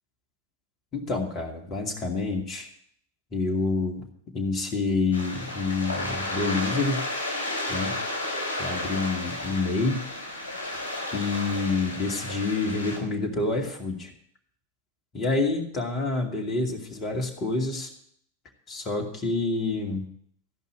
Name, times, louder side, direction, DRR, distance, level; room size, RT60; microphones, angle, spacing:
voice 1, 0.9-2.7 3.3-4.0 4.3-7.0 7.7-7.9 8.6-10.0 11.1-14.1 15.1-17.9 18.7-20.1, left 3 dB, 30° left, 2 dB, 2.5 m, -27 dB
sound 1, 5.1-13.0, left 1 dB, 90° right, 3.8 m, -32 dB
14.0 x 5.5 x 9.0 m, 0.66 s
figure-of-eight pair, 90°, 0 cm